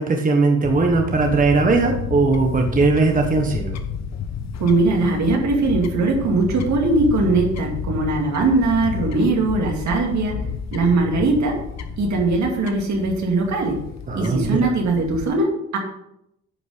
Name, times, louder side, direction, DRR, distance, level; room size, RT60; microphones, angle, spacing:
voice 1, 0.0-3.8 14.1-14.6, right 3 dB, 25° right, 3 dB, 1.2 m, -19 dB
Fowl / Bird, 0.6-15.3, left 7 dB, 60° left, 1.0 m, -31 dB
voice 2, 4.6-10.4 10.7-11.5 12.0-13.8 14.1-15.5 15.7-15.8, right 3 dB, 70° right, 1 dB, 2.4 m, -20 dB
9.8 x 5.3 x 5.0 m, 0.81 s
cardioid pair, 90°, 30 cm